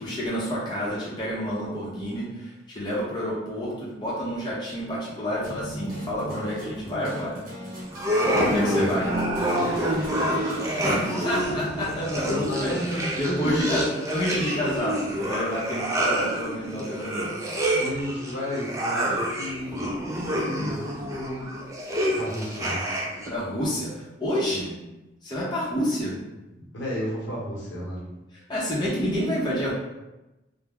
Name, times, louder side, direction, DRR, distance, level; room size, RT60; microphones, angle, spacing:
voice 1, 0.0-7.4 8.3-9.1 10.8-17.3 17.7-17.8 19.0-19.2 23.3-24.7 25.2-26.1 28.5-29.7, equal, 25° left, -7 dB, 0.6 m, -29 dB
sound 1, 5.4-13.7, equal, 50° right, 0.8 m, -39 dB
sound 2, 7.9-23.3, equal, 15° right, 0.4 m, -27 dB
voice 2, 8.2-9.2 9.5-11.4 12.2-13.7 16.7-16.8 17.8-20.0 20.6-20.8 21.4-21.5 22.1-23.0 26.5-28.2, left 1 dB, 80° left, -5 dB, 0.9 m, -33 dB
2.2 x 2.0 x 3.4 m, 1.0 s
head